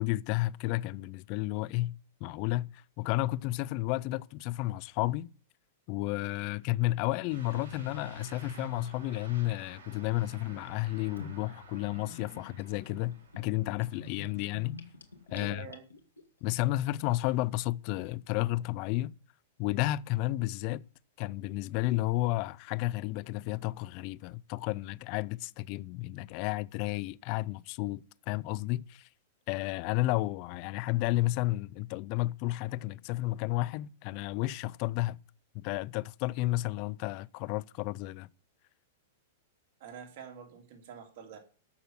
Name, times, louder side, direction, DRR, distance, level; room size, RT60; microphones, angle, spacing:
voice 1, 0.0-5.3 5.9-14.8 15.3-15.7 16.4-19.1 19.6-20.8 21.2-29.1 29.5-35.2 35.5-38.3, left 18 dB, 45° left, 0.5 m, -32 dB
Truck / Accelerating revving vroom, 7.3-15.3, left 1 dB, 80° right, 5.0 m, -48 dB
Gurgling / Bathtub (filling or washing), 11.2-16.2, left 3 dB, 85° left, 1.9 m, -48 dB
voice 2, 15.3-15.8 39.8-41.4, right 7 dB, 55° right, 3.1 m, -46 dB
13.5 x 6.3 x 7.9 m
figure-of-eight pair, 100°, 0 cm